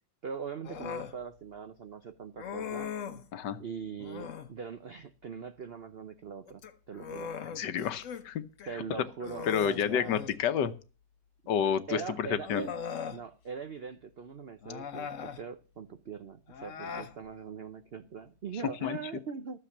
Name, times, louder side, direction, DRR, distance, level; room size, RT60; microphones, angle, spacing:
voice 1, 0.2-2.9 3.6-6.6 6.9-7.3 8.7-10.2 11.9-12.7 13.1-19.6, right 6 dB, 65° right, 9 dB, 0.5 m, -41 dB
Human voice, 0.6-1.2 2.4-3.3 4.0-4.5 6.5-8.2 8.6-8.7 9.2-10.4 11.6-11.7 12.4-13.2 14.6-15.4 16.5-17.1, left 7 dB, 50° left, 1.1 m, -40 dB
voice 2, 7.6-8.4 9.5-10.7 11.5-12.6 18.8-19.0, left 8 dB, 70° left, 13 dB, 1.5 m, -29 dB
13.5 x 6.9 x 7.2 m, 0.35 s
omnidirectional pair, 2.0 m